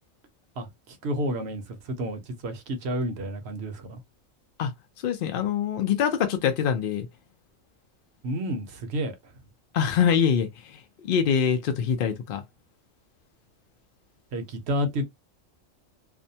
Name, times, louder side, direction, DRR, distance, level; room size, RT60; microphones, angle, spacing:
voice 1, 0.6-4.0 8.2-9.2 14.3-15.0, equal, 60° right, 0.8 m, -30 dB
voice 2, 5.0-7.1 9.7-10.8 11.1-12.4, left 7 dB, 75° left, 0.5 m, -24 dB
2.6 x 2.1 x 2.7 m
omnidirectional pair, 1.4 m